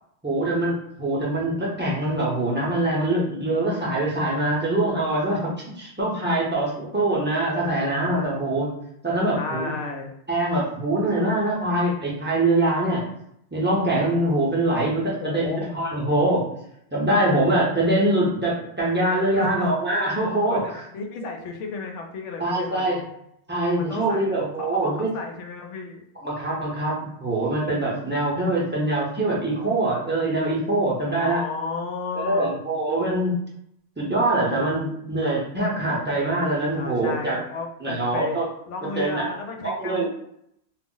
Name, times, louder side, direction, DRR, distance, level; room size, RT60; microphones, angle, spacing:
voice 1, 0.2-5.5 5.8-8.7 9.0-9.7 10.3-13.0 13.5-16.4 16.9-20.8 22.4-23.0 23.5-25.1 26.2-31.4 32.2-33.3 34.0-37.4 37.8-38.5 39.0-39.3 39.6-40.1, right 1 dB, 15° right, -5 dB, 0.5 m, -23 dB
voice 2, 9.3-10.1 15.2-15.7 19.3-19.7 20.5-23.1 23.8-26.0 31.2-32.6 36.7-40.1, left 4 dB, 90° left, 3 dB, 0.9 m, -33 dB
2.3 x 2.0 x 3.7 m, 0.75 s
omnidirectional pair, 1.2 m